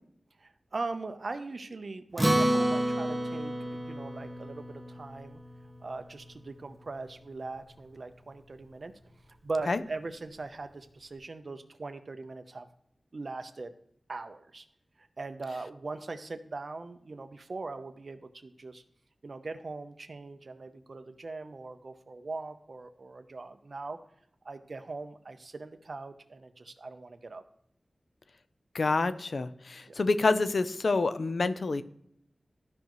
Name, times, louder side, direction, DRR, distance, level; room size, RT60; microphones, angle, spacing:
voice 1, 0.4-5.4 5.8-8.9 9.4-12.7 13.1-13.7 14.1-14.6 15.0-18.8 19.2-24.0 24.4-27.4 29.9-30.0, right 3 dB, 60° right, 8 dB, 0.7 m, -40 dB
Acoustic guitar, 2.2-6.9, right 1 dB, 10° right, 1.0 m, -31 dB
voice 2, 28.7-31.8, left 3 dB, 70° left, 12 dB, 0.5 m, -27 dB
13.5 x 5.3 x 3.0 m, 0.74 s
wide cardioid pair, 90°, 0 cm